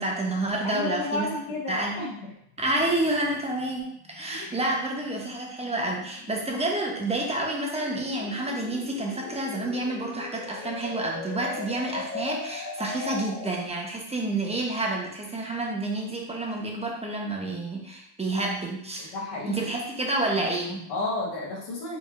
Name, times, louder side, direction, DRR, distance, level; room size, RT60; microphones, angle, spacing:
voice 1, 0.0-1.3 1.7-2.0 2.6-19.1 19.5-20.8, right 2 dB, 15° right, 0 dB, 0.8 m, -29 dB
voice 2, 0.6-2.3 4.3-4.6 19.0-19.7 20.9-22.0, left 2 dB, 55° left, -4 dB, 1.2 m, -32 dB
sound 1, 2.4-13.7, left 5 dB, 30° left, 0.6 m, -41 dB
4.2 x 3.9 x 2.4 m, 0.76 s
cardioid pair, 105°, 50 cm